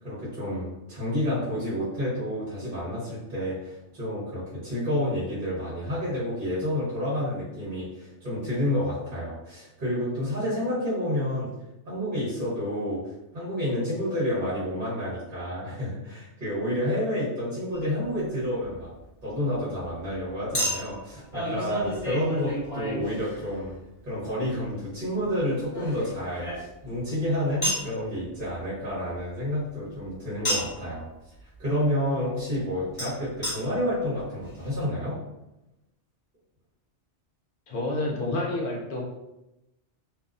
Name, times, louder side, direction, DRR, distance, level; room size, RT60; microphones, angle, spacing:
voice 1, 0.0-11.5 11.9-13.0 13.3-18.9 19.2-23.8 24.0-31.0 31.6-35.2, left 1 dB, 50° right, -10 dB, 1.2 m, -29 dB
Chink clink, 17.7-17.9 20.5-23.7 25.3-27.0 27.6-27.9 30.4-30.8 33.0-33.1 33.4-33.5 34.2-34.3 34.5-34.6, equal, 30° left, 1.2 m, -31 dB
voice 2, 37.7-39.0, left 2 dB, 60° left, -1 dB, 0.6 m, -29 dB
2.6 x 2.1 x 2.4 m, 0.93 s
omnidirectional pair, 1.2 m